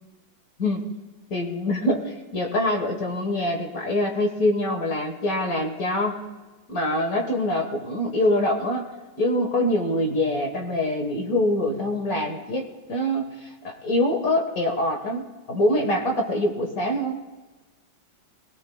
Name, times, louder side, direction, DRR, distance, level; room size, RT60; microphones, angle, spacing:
voice 1, 1.3-6.2 6.7-8.9 9.2-17.2, left 1 dB, 50° left, 2 dB, 1.9 m, -24 dB
26.5 x 17.0 x 2.3 m, 1.2 s
omnidirectional pair, 2.2 m